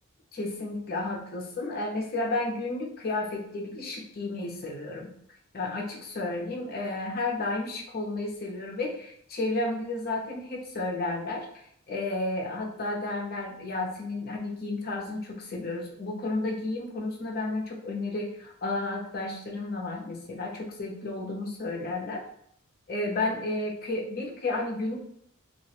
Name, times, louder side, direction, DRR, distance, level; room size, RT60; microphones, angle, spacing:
voice 1, 0.3-5.1 5.5-22.3 22.9-25.0, left 2 dB, 45° left, -1 dB, 0.5 m, -32 dB
2.3 x 2.1 x 2.8 m, 0.67 s
head